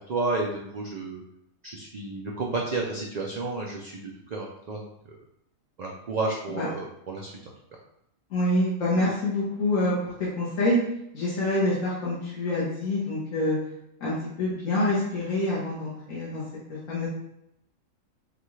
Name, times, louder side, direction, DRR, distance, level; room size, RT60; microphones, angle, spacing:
voice 1, 0.1-1.2 1.6-4.8 5.8-7.3, right 3 dB, 55° right, -1 dB, 0.4 m, -31 dB
voice 2, 8.3-10.8 11.1-13.6 14.0-16.4 16.7-17.1, left 1 dB, 70° left, -8 dB, 1.6 m, -26 dB
5.9 x 2.4 x 3.2 m, 0.79 s
omnidirectional pair, 1.4 m